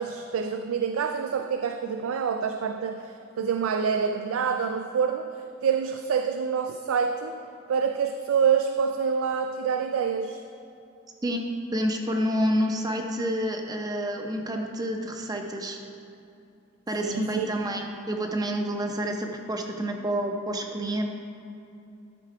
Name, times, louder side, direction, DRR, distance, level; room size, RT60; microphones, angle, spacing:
voice 1, 0.0-5.3 5.6-7.4 7.7-10.4 17.0-17.5, right 6 dB, 85° right, 6 dB, 0.4 m, -27 dB
voice 2, 11.7-15.8 16.9-21.1, equal, 20° right, 3 dB, 0.6 m, -28 dB
11.5 x 4.7 x 4.8 m, 2.6 s
head